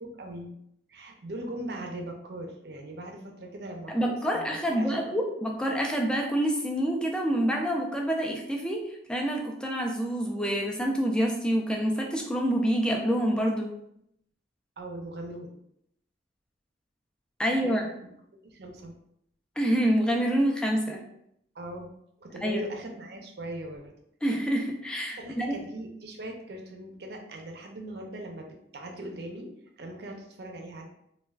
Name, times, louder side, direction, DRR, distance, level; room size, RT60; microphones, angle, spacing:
voice 1, 0.0-0.6 0.9-5.1 14.8-15.5 17.6-17.8 18.4-18.9 21.5-21.9 22.2-23.9 25.2-28.5 28.7-30.9, right 1 dB, 60° right, 2 dB, 0.5 m, -40 dB
voice 2, 3.9-13.8 17.4-17.9 19.6-21.0 22.4-22.6 24.2-25.6, equal, 5° left, 0 dB, 0.3 m, -27 dB
3.3 x 2.3 x 2.3 m, 0.74 s
head